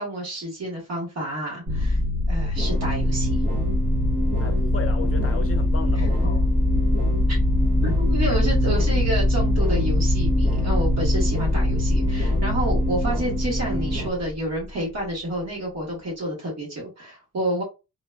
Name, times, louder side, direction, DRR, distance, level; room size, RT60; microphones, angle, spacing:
voice 1, 0.0-2.0 2.3-3.4 6.0-6.1 7.3-7.4 7.8-17.6, right 1 dB, 55° right, 1.4 m, -29 dB
sound 1, 1.7-14.5, left 2 dB, 75° right, 1.3 m, -23 dB
sound 2, 2.6-14.1, right 1 dB, 25° right, 0.8 m, -27 dB
voice 2, 4.4-6.5, left 6 dB, 45° left, 0.6 m, -35 dB
3.8 x 2.3 x 2.2 m
wide cardioid pair, 145°, 32 cm